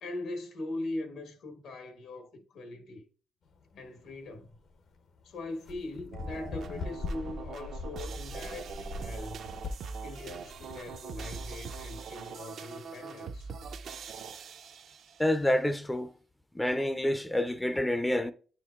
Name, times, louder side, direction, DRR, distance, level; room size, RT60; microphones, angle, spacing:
voice 1, 0.0-3.0 3.7-4.5 5.2-9.5 10.0-13.5, left 2 dB, 80° left, 1.2 m, -41 dB
sound 1, 3.5-11.9, left 3 dB, 65° left, 0.7 m, -42 dB
sound 2, 6.1-15.3, right 5 dB, 65° right, 0.4 m, -42 dB
voice 2, 15.2-16.1 16.5-18.3, left 1 dB, 10° left, 0.4 m, -28 dB
9.1 x 4.6 x 2.3 m
cardioid pair, 90°, 0 cm